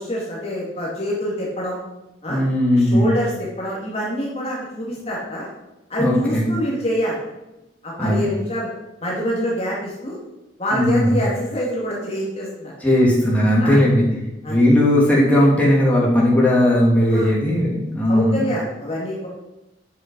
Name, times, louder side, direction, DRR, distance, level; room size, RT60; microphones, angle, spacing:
voice 1, 0.0-1.8 2.2-2.4 2.7-5.5 5.9-7.2 7.8-8.7 9.0-10.2 10.6-12.7 13.6-13.8 14.4-14.6 17.1-17.3 18.1-19.3, equal, 35° left, -4 dB, 2.1 m, -26 dB
voice 2, 2.3-3.1 6.0-6.5 8.0-8.2 10.7-11.2 12.8-14.0 14.5-18.5, left 1 dB, 10° left, -5 dB, 2.7 m, -17 dB
9.1 x 6.6 x 5.3 m, 0.95 s
head